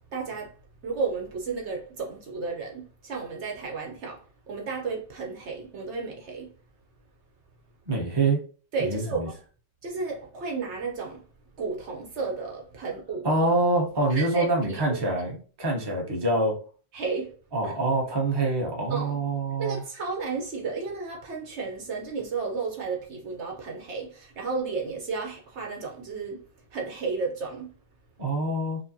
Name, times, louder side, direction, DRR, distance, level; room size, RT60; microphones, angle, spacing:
voice 1, 0.1-0.5 0.8-4.2 4.5-6.5 8.7-9.3 9.8-11.2 11.6-13.3 14.1-15.0 16.9-17.3 17.6-17.7 18.9-19.2 19.6-26.4 26.7-27.7, right 4 dB, 65° right, 1.0 m, -33 dB
voice 2, 7.9-8.4 8.8-9.3 13.2-16.6 17.5-19.8 28.2-28.8, right 2 dB, 20° right, 0.9 m, -25 dB
5.0 x 2.1 x 2.7 m
omnidirectional pair, 1.3 m